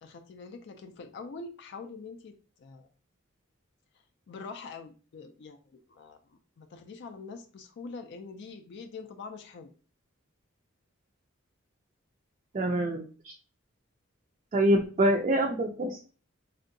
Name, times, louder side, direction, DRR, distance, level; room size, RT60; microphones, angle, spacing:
voice 1, 0.0-2.9 4.3-9.7, left 4 dB, 55° left, 7 dB, 0.4 m, -44 dB
voice 2, 12.5-13.3 14.5-16.0, right 1 dB, 35° right, 2 dB, 0.3 m, -26 dB
3.4 x 2.7 x 2.5 m, 0.37 s
head